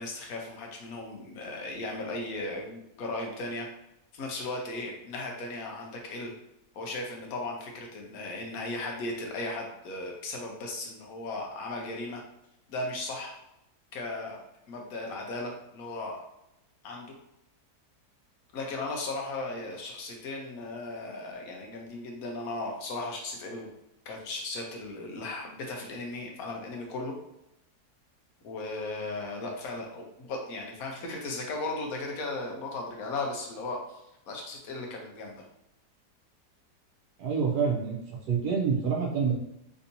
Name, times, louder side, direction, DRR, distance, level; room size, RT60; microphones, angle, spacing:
voice 1, 0.0-3.7 4.1-6.3 6.7-12.2 12.7-13.4 13.9-14.4 14.7-16.2 16.8-17.2 18.5-23.7 24.0-27.2 28.4-34.0 34.3-35.4, left 2 dB, 65° left, 1 dB, 1.1 m, -36 dB
voice 2, 37.2-39.3, right 6 dB, 70° right, -1 dB, 1.1 m, -27 dB
3.5 x 2.7 x 2.7 m, 0.83 s
omnidirectional pair, 1.8 m